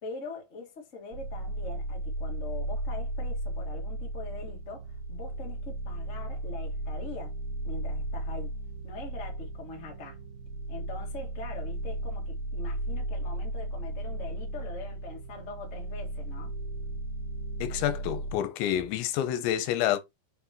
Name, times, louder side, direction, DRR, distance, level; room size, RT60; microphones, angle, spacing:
voice 1, 0.0-7.3 7.6-8.6 8.8-10.2 10.7-16.5, left 3 dB, 40° left, 1.0 m, -43 dB
sound 1, 1.1-18.4, right 1 dB, 80° right, 2.6 m, -35 dB
voice 2, 17.6-20.0, left 11 dB, 85° left, 3.0 m, -28 dB
6.1 x 6.0 x 3.0 m
omnidirectional pair, 5.3 m